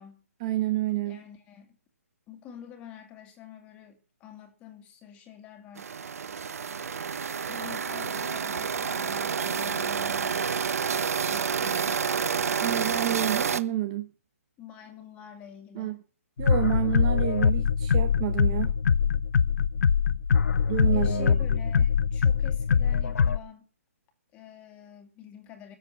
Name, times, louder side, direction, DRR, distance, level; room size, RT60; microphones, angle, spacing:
voice 1, 0.4-1.2 12.6-14.1 15.7-16.0 16.4-18.7 20.7-21.4, right 13 dB, 25° right, 0.9 m, -29 dB
voice 2, 1.1-1.8 2.3-5.9 7.5-12.1 14.6-16.0 20.9-23.7 24.3-25.8, left 8 dB, 15° left, 2.3 m, -47 dB
sound 1, 5.8-13.6, right 6 dB, 70° right, 1.0 m, -29 dB
sound 2, 16.4-23.4, left 6 dB, 70° left, 0.7 m, -23 dB
16.0 x 7.6 x 7.4 m
hypercardioid pair, 160°, 8 cm